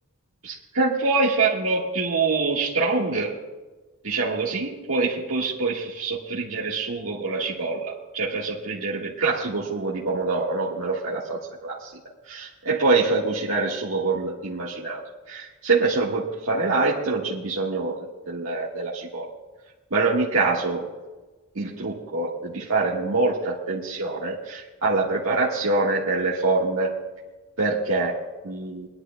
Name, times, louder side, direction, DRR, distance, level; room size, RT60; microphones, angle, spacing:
voice 1, 0.4-3.4 4.0-11.9 12.3-15.0 15.3-19.3 19.9-20.8 21.5-26.9 27.6-28.2 28.4-28.9, right 3 dB, 90° right, -5 dB, 1.5 m, -25 dB
23.5 x 11.5 x 2.2 m, 1.2 s
head